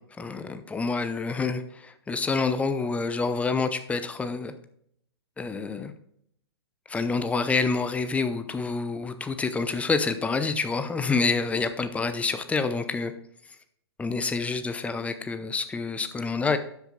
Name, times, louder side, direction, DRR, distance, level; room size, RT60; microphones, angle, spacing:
voice 1, 0.2-4.5 5.4-5.9 6.9-13.1 14.0-16.6, left 4 dB, 10° left, 10 dB, 0.8 m, -27 dB
12.5 x 8.2 x 2.3 m, 0.70 s
figure-of-eight pair, 105°, 14 cm